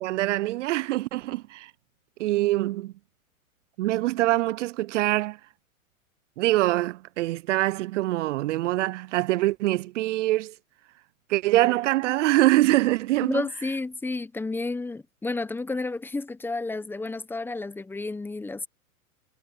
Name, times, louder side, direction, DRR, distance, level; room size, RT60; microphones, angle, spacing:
voice 1, 0.0-1.7 2.2-2.9 3.8-5.4 6.4-10.5 11.3-13.5, right 17 dB, 55° right, 0.6 m, -24 dB
voice 2, 13.2-18.7, left 3 dB, 5° left, 0.9 m, -31 dB
hypercardioid pair, 130°, 42 cm